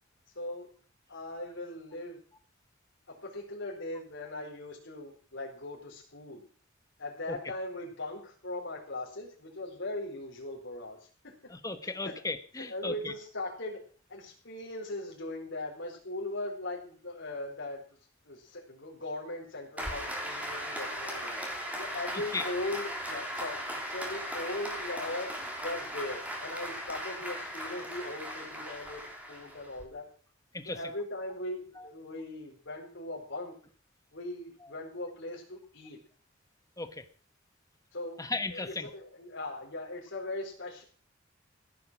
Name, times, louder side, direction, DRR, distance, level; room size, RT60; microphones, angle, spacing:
voice 1, 0.4-0.7 1.1-2.2 3.1-6.4 7.0-11.0 11.2-11.5 12.0-12.2 12.6-13.8 14.1-18.0 18.2-21.4 21.8-23.6 23.9-25.3 25.6-29.0 29.3-30.1 30.6-33.5 34.1-36.0 37.9-38.2 38.5-40.8, left 2 dB, 65° left, -2 dB, 4.3 m, -39 dB
voice 2, 11.5-13.1 22.3-22.4 30.5-30.8 31.8-31.9 36.8-37.0 38.2-38.9, left 3 dB, 15° left, 10 dB, 1.2 m, -36 dB
Applause, 19.8-29.8, equal, 10° right, 3.5 m, -38 dB
15.5 x 9.5 x 6.2 m, 0.43 s
head